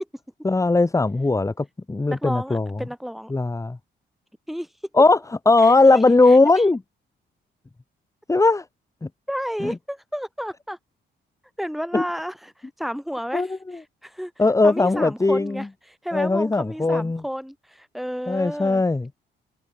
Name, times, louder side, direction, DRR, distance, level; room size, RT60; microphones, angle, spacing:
voice 1, 0.4-2.7 3.3-3.8 4.9-5.2 5.4-6.8 8.3-8.6 9.0-9.1 9.6-9.7 11.9-12.0 13.3-13.5 14.4-15.6 16.1-17.2 18.3-19.1, left 3 dB, 15° left, 1.4 m, -18 dB
voice 2, 2.1-3.3 4.5-4.7 5.6-6.0 6.3-6.6 9.3-10.8 11.6-14.3 14.6-18.8, equal, ahead, 2.8 m, -32 dB
open air
cardioid pair, 90°, 20 cm